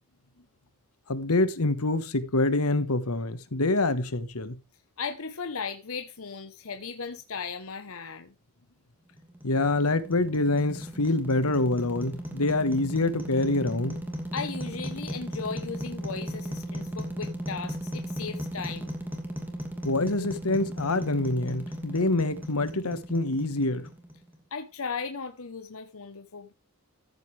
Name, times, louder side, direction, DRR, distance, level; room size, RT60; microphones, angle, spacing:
voice 1, 1.1-4.6 9.4-14.0 19.8-23.9, left 2 dB, 90° left, 1.4 m, -26 dB
voice 2, 5.0-8.3 14.3-19.0 24.5-26.5, left 5 dB, 70° left, 1.1 m, -36 dB
sound 1, 9.2-24.4, equal, 10° right, 2.7 m, -36 dB
14.0 x 8.3 x 3.4 m
head